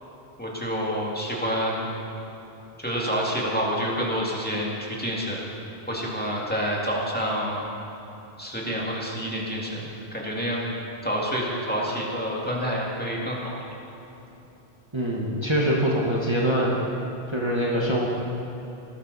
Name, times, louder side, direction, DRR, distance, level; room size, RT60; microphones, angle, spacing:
voice 1, 0.4-1.9 2.8-5.5 5.9-7.6 8.4-10.6 11.0-13.4, equal, 10° left, -5 dB, 2.3 m, -28 dB
voice 2, 14.9-16.9 17.3-18.1, equal, 25° right, -4 dB, 1.4 m, -24 dB
19.0 x 13.0 x 4.1 m, 2.9 s
omnidirectional pair, 1.0 m